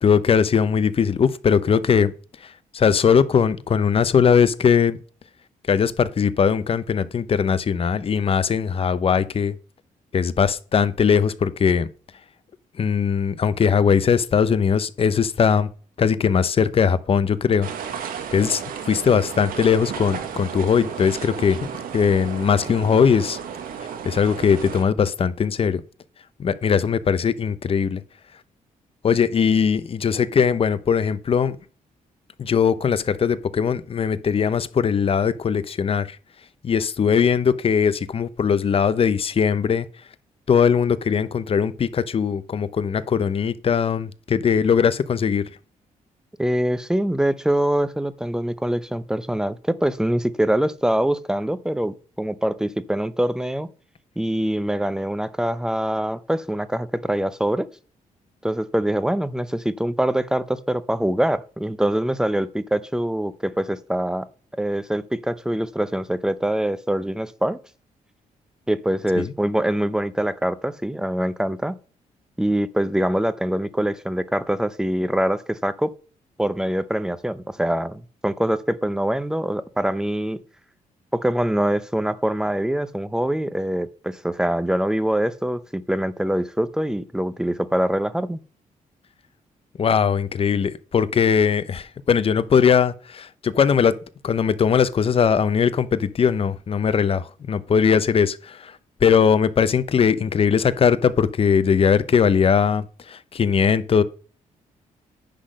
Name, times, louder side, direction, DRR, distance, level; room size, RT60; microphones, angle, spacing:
voice 1, 0.0-2.1 2.7-5.0 5.7-9.6 10.1-11.9 12.8-15.7 16.0-17.7 18.3-18.6 18.9-21.7 21.9-23.4 24.0-25.8 26.4-28.0 29.0-31.6 32.4-36.2 36.6-39.9 40.5-45.5 69.2-69.3 89.8-94.0 94.2-98.7 99.0-104.0, left 6 dB, 40° left, 0.7 m, -20 dB
sound 1, 17.6-24.8, right 7 dB, 85° right, 1.4 m, -33 dB
voice 2, 46.4-53.7 54.2-57.7 58.4-64.3 64.6-67.6 68.7-71.8 72.4-75.9 76.4-80.4 81.1-88.4, right 1 dB, 5° right, 0.6 m, -24 dB
10.5 x 3.8 x 6.4 m
cardioid pair, 110°, 14 cm